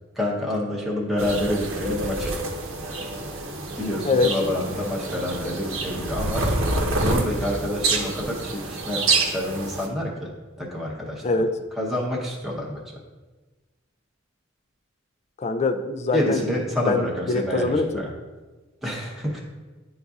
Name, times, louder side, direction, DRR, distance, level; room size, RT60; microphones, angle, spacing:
voice 1, 0.2-2.3 3.8-6.4 7.0-10.3 10.6-11.2 11.8-12.8 16.1-18.1 18.8-19.4, left 1 dB, ahead, -4 dB, 0.8 m, -28 dB
sound 1, 1.2-9.9, right 2 dB, 75° right, 0.9 m, -27 dB
voice 2, 15.4-16.5 16.9-18.0, left 3 dB, 30° left, 8 dB, 0.4 m, -23 dB
10.5 x 3.9 x 2.4 m, 1.2 s
head